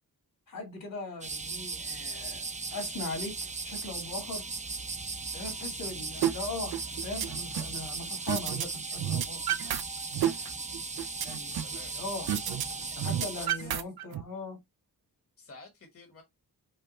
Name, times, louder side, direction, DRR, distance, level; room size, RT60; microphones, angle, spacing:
voice 1, 0.5-2.4 2.7-4.4 5.3-9.4 11.2-12.3 13.0-14.6, left 2 dB, 65° left, 2.2 m, -39 dB
sound 1, 1.2-13.5, right 4 dB, 20° right, 0.5 m, -37 dB
sound 2, 6.2-6.3 6.7-7.8 8.3-8.7 8.9-9.8 10.1-11.8 12.3-12.6 12.9-14.2, right 11 dB, 85° right, 0.5 m, -30 dB
voice 2, 13.3-13.8 15.4-16.2, left 4 dB, 40° left, 1.2 m, -50 dB
5.5 x 2.2 x 4.1 m
wide cardioid pair, 130°, 36 cm